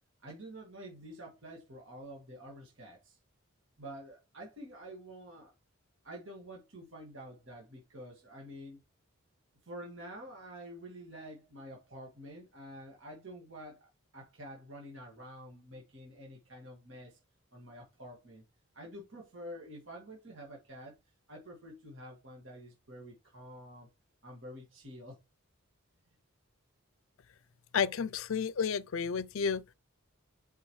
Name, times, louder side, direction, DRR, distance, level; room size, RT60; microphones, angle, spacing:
voice 1, 0.2-3.2 3.8-5.5 6.0-8.8 9.6-17.2 17.5-18.4 18.7-21.0 21.3-23.9 24.2-25.2, equal, 60° right, 2.0 m, -48 dB
voice 2, 27.7-29.7, left 6 dB, 65° left, 0.5 m, -31 dB
8.1 x 4.6 x 3.2 m
head